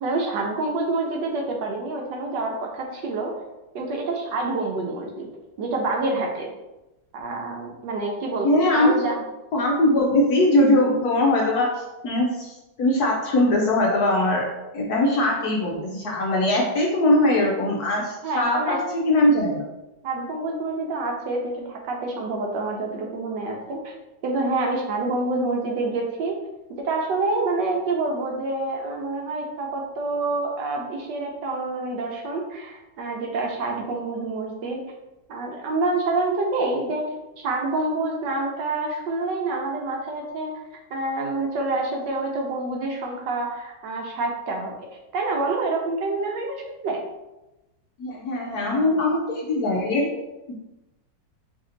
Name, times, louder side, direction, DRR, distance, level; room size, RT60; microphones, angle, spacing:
voice 1, 0.0-3.3 3.7-5.3 5.6-6.5 7.1-9.2 18.2-18.8 20.0-23.9 24.2-26.4 26.8-34.8 35.3-37.0 37.4-40.5 40.9-44.7 45.1-46.5 46.8-47.0, right 2 dB, 70° right, 1 dB, 1.2 m, -27 dB
voice 2, 8.4-9.0 9.5-14.5 14.7-19.6 48.0-50.1, left 1 dB, 70° left, -2 dB, 1.0 m, -21 dB
3.3 x 2.7 x 3.8 m, 0.99 s
omnidirectional pair, 2.1 m